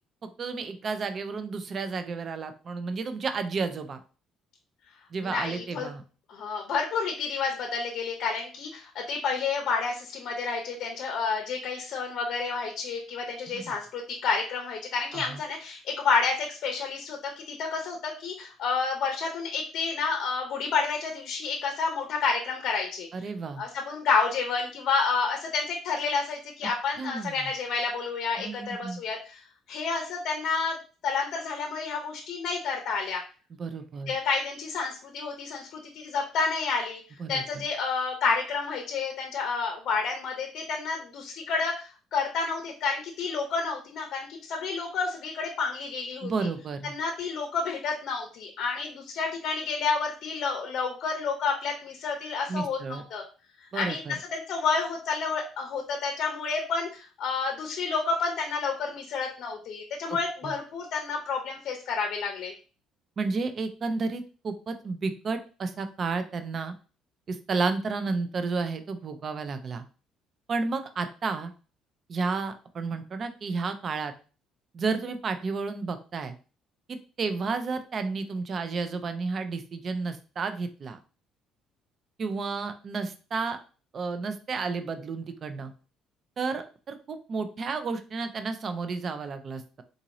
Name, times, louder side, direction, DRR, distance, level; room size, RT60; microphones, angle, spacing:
voice 1, 0.4-4.0 5.1-6.0 13.5-13.7 15.1-15.4 23.1-23.6 27.0-27.5 28.4-29.0 33.5-34.1 37.2-37.6 46.2-46.9 52.5-53.0 53.7-54.2 60.1-60.2 60.4-60.5 63.2-66.7 67.3-69.8 70.5-71.5 72.1-74.1 74.7-76.3 76.9-81.0 82.2-83.6 83.9-85.7 86.4-89.8, right 4 dB, 30° right, 9 dB, 0.3 m, -32 dB
voice 2, 5.2-5.9 6.3-23.1 23.6-30.8 31.0-33.2 34.1-37.0 37.3-46.3 46.8-53.2 53.7-54.0 54.3-62.5, left 5 dB, 45° left, 2 dB, 0.6 m, -30 dB
3.8 x 2.6 x 2.9 m, 0.36 s
cardioid pair, 180°, 0 cm